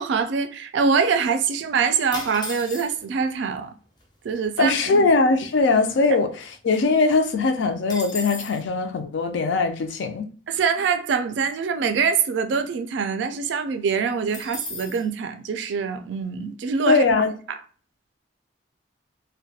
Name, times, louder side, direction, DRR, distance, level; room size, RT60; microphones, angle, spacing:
voice 1, 0.0-3.7 4.2-5.0 10.5-17.0 17.5-17.6, right 5 dB, 70° right, 0.3 m, -24 dB
sound 1, 2.1-3.2 4.0-4.1 4.3-4.6 5.1-6.5 6.9-7.0 7.3-8.7 14.3-15.1, left 2 dB, 20° left, 0.5 m, -37 dB
voice 2, 4.6-10.3 16.9-17.3, left 3 dB, 80° left, 0.4 m, -21 dB
2.3 x 2.1 x 2.6 m
head